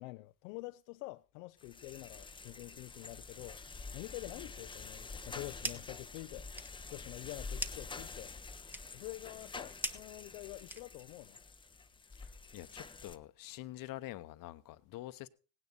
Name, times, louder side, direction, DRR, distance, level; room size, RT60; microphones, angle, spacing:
voice 1, 0.0-3.6 3.9-6.5 6.9-8.3 8.9-11.4, left 22 dB, 80° left, 0.5 m, -47 dB
sound 1, 1.6-13.2, left 4 dB, 15° left, 0.6 m, -48 dB
sound 2, 5.5-6.0 6.3-11.2, right 1 dB, 5° right, 1.0 m, -44 dB
voice 2, 12.2-15.3, left 16 dB, 60° left, 0.9 m, -46 dB
17.0 x 9.7 x 3.9 m
supercardioid pair, 75°, 37 cm